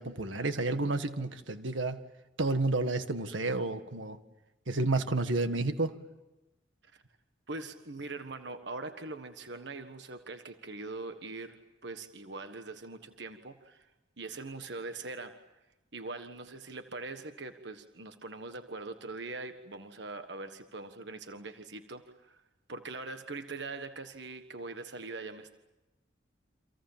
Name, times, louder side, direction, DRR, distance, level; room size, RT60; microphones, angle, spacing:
voice 1, 0.0-2.0 2.4-4.2 4.7-5.9, right 2 dB, 85° right, 9 dB, 1.7 m, -30 dB
voice 2, 7.5-13.9 14.2-15.4 15.9-22.4 22.7-25.5, right 3 dB, 65° right, 8 dB, 1.5 m, -42 dB
29.5 x 26.5 x 7.4 m, 1.0 s
head